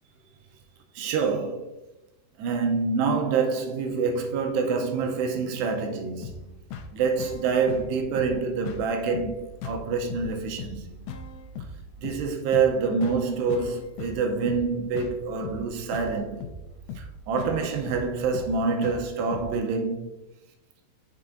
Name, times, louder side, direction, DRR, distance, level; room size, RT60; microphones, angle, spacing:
voice 1, 1.0-1.8 2.4-6.6 6.9-11.1 12.0-16.5 17.0-20.1, right 5 dB, 85° right, 2.7 m, -27 dB
sound 1, 6.2-19.6, left 4 dB, 80° left, 2.5 m, -39 dB
7.9 x 5.9 x 2.6 m
omnidirectional pair, 5.0 m